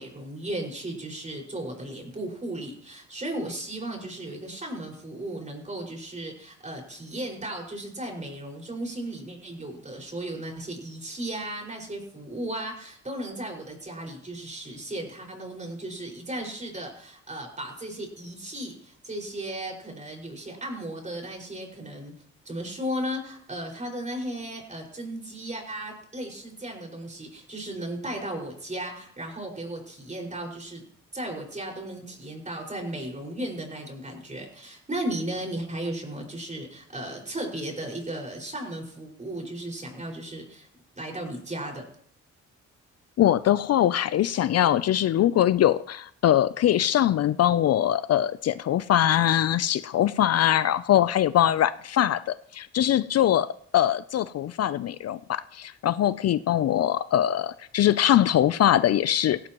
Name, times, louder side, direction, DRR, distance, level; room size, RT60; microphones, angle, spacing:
voice 1, 0.0-22.1 22.5-30.8 31.1-40.7 41.0-41.8, right 1 dB, 25° right, 1 dB, 5.4 m, -35 dB
voice 2, 43.2-53.5 53.7-59.5, left 11 dB, 55° left, 15 dB, 0.5 m, -22 dB
17.0 x 17.0 x 3.0 m, 0.63 s
cardioid pair, 90°, 30 cm